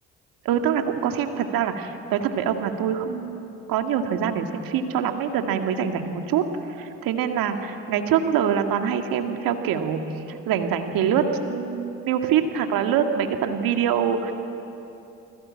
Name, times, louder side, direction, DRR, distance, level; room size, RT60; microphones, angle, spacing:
voice 1, 0.4-6.5 6.8-10.0 10.5-14.3, right 8 dB, 70° right, 5 dB, 2.1 m, -24 dB
29.5 x 20.0 x 8.8 m, 2.9 s
hypercardioid pair, 50°, 36 cm